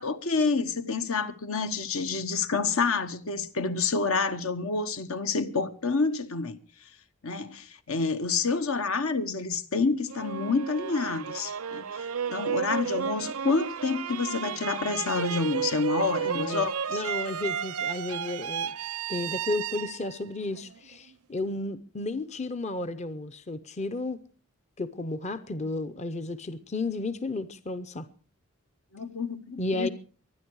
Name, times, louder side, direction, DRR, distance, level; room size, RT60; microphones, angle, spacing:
voice 1, 0.0-6.6 7.2-17.0 28.9-29.9, left 4 dB, 75° left, 1.1 m, -28 dB
sound 1, 10.1-21.1, right 7 dB, 80° right, 0.6 m, -33 dB
voice 2, 16.2-18.7 19.1-24.2 24.8-28.1 29.6-29.9, left 2 dB, 30° left, 0.6 m, -33 dB
23.5 x 9.7 x 4.7 m
head